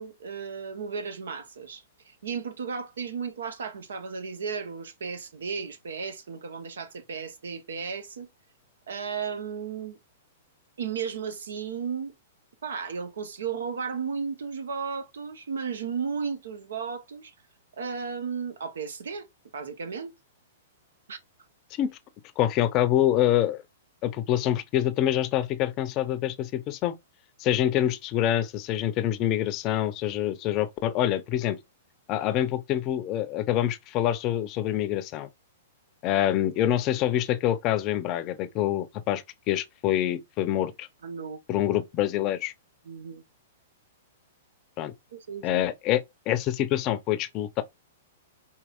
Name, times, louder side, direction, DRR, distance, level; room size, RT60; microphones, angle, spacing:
voice 1, 0.0-8.3 8.9-10.0 10.8-12.1 12.6-17.3 17.8-19.3 19.5-20.1 21.1-21.2 41.0-41.4 42.8-43.2 45.1-45.6, right 6 dB, 75° right, 0.8 m, -34 dB
voice 2, 22.4-23.6 24.0-26.9 27.4-31.6 32.1-35.3 36.0-40.9 41.5-42.5 44.8-44.9 45.4-47.6, left 12 dB, 35° left, 0.6 m, -26 dB
4.7 x 2.9 x 2.4 m
hypercardioid pair, 115°, 0 cm